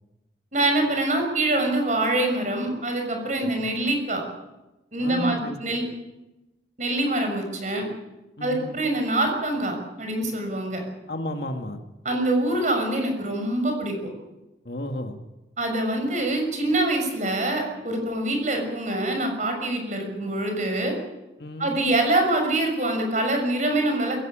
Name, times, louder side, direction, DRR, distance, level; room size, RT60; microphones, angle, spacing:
voice 1, 0.5-4.2 4.9-5.8 6.8-7.9 8.4-10.8 12.0-13.9 15.6-20.9 21.6-24.2, right 1 dB, 40° right, 4 dB, 6.2 m, -25 dB
voice 2, 5.0-5.6 8.4-8.7 11.1-11.8 14.7-15.2 21.4-21.7, left 1 dB, 60° left, 5 dB, 2.0 m, -33 dB
22.5 x 16.5 x 8.8 m, 1.0 s
head